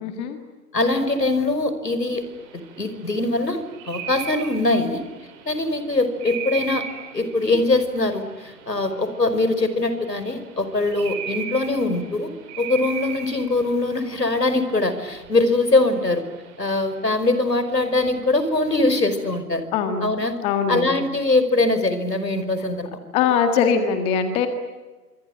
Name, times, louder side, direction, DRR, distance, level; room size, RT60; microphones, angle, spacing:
voice 1, 0.0-0.4 19.7-20.1 20.4-20.9 23.1-24.5, left 6 dB, 10° left, 8 dB, 1.8 m, -21 dB
voice 2, 0.7-2.2 2.5-5.0 5.5-6.9 7.1-12.3 12.6-16.2 16.6-19.6 20.0-20.3 20.7-22.9, left 2 dB, 90° left, 10 dB, 5.4 m, -22 dB
sound 1, 2.2-19.4, right 7 dB, 20° right, 4.1 m, -39 dB
26.5 x 24.5 x 9.2 m, 1.2 s
figure-of-eight pair, 145°, 48 cm